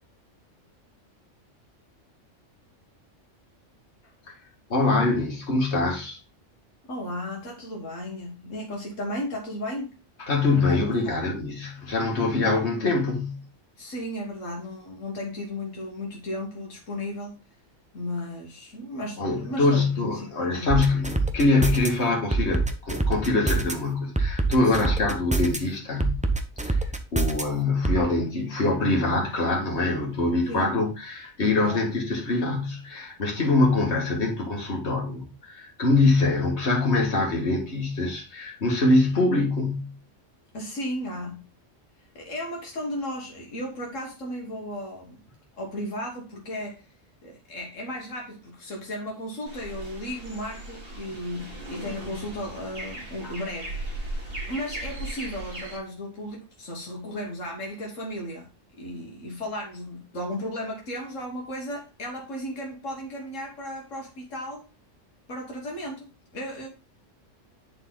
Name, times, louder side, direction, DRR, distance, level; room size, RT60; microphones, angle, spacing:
voice 1, 4.7-6.2 10.3-13.4 19.2-26.2 26.7-39.9, left 3 dB, 60° left, 2.2 m, -24 dB
voice 2, 6.8-10.0 10.5-11.2 13.8-17.4 17.9-20.9 24.6-24.9 30.4-30.7 31.6-31.8 40.5-41.5 42.2-45.2 45.6-47.0 47.2-53.8 54.5-58.5 58.8-64.7 65.3-66.7, left 1 dB, 85° left, 1.9 m, -35 dB
sound 1, 20.7-21.9 22.3-23.7 24.2-25.6 26.0-27.4 27.8-28.0, right 3 dB, 10° right, 0.5 m, -24 dB
sound 2, 49.5-55.8, right 1 dB, 50° right, 2.7 m, -37 dB
9.8 x 4.2 x 3.9 m
omnidirectional pair, 1.3 m